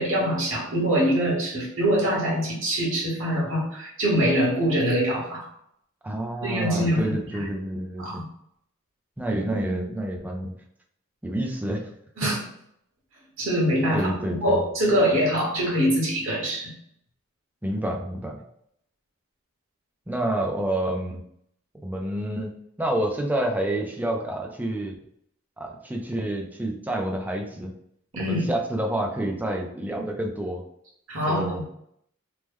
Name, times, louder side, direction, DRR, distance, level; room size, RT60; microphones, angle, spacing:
voice 1, 0.0-5.5 6.4-7.1 8.0-8.2 12.2-12.4 13.4-16.7 28.1-28.5 31.1-31.6, equal, 65° right, -4 dB, 1.2 m, -24 dB
voice 2, 6.0-8.2 9.2-10.5 11.2-11.9 12.2-12.3 13.9-14.6 17.6-18.4 20.1-21.2 21.8-24.9 25.6-27.7 28.2-30.6 31.3-31.6, right 1 dB, 10° right, 1 dB, 0.4 m, -28 dB
3.0 x 2.1 x 3.5 m, 0.73 s
head